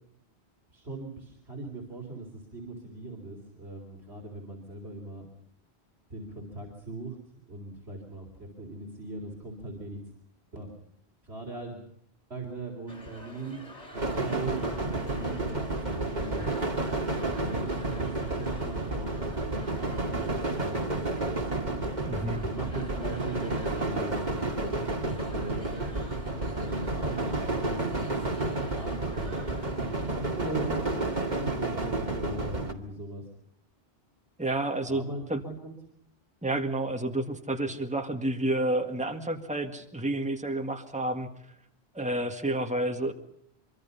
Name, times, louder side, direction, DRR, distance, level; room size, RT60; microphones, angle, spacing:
voice 1, 0.7-5.3 6.1-7.2 7.5-10.0 10.5-10.7 11.2-11.9 12.3-13.6 13.9-16.5 17.2-21.4 21.6-21.9 22.4-24.5 25.1-33.2 34.9-35.7, right 2 dB, 80° right, 0 dB, 4.3 m, -40 dB
sound 1, 12.9-30.1, equal, 40° left, 5.8 m, -48 dB
sound 2, 13.9-32.7, right 2 dB, 45° right, 2.4 m, -31 dB
voice 2, 22.1-22.5 34.4-35.4 36.4-41.6 41.9-43.1, right 1 dB, 5° right, 5 dB, 1.9 m, -30 dB
24.5 x 24.0 x 5.6 m, 0.70 s
omnidirectional pair, 1.1 m